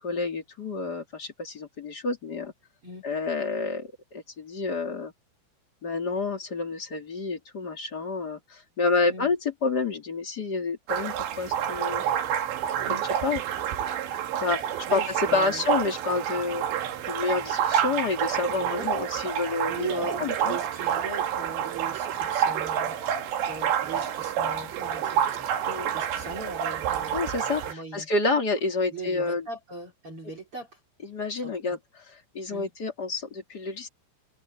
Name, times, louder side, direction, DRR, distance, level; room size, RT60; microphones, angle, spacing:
voice 1, 0.0-2.5 3.0-5.1 5.8-12.0 12.9-13.4 14.4-16.6 17.1-20.6 25.7-25.9 27.1-29.5 31.0-33.9, left 4 dB, 30° left, 2.2 m, -29 dB
sound 1, 10.9-27.7, right 9 dB, 80° right, 4.2 m, -28 dB
voice 2, 14.9-15.6 18.5-18.9 19.7-23.0 23.4-25.2 25.9-27.3 27.7-28.1 28.9-30.8 31.4-31.8 32.5-32.7, right 3 dB, 30° right, 4.5 m, -39 dB
omnidirectional pair, 5.0 m